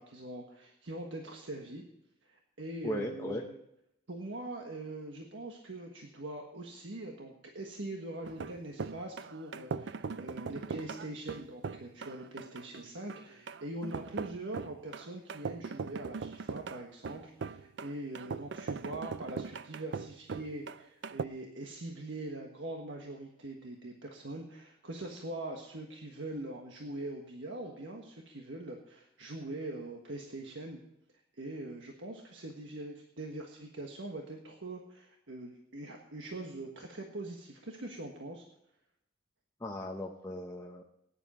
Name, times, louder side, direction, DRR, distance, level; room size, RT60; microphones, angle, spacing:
voice 1, 0.0-1.8 2.2-3.5 4.1-30.8 31.3-38.4, right 2 dB, 85° right, 2 dB, 1.5 m, -42 dB
voice 2, 2.8-3.4 39.6-40.8, left 1 dB, 15° left, 0 dB, 0.8 m, -37 dB
sound 1, 8.2-21.2, right 5 dB, 70° right, 0.4 m, -40 dB
16.5 x 10.0 x 4.3 m, 0.83 s
head